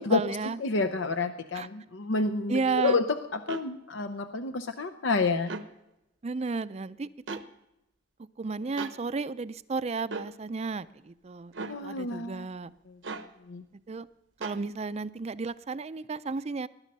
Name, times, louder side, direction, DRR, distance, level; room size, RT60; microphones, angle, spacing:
voice 1, 0.0-0.6 1.5-1.7 2.5-3.0 6.2-7.4 8.4-12.7 13.9-14.1 14.4-16.7, right 4 dB, 35° right, 15 dB, 0.4 m, -33 dB
voice 2, 0.6-5.5 11.6-12.5 12.9-13.0 13.5-13.6, left 3 dB, 80° left, 8 dB, 0.7 m, -29 dB
sound 1, 3.5-3.7 5.4-5.7 7.3-7.5 8.8-9.0 10.1-10.3 11.5-11.8 13.0-13.3 14.4-14.6, right 3 dB, 70° right, 0.9 m, -37 dB
20.0 x 11.5 x 5.4 m, 0.91 s
head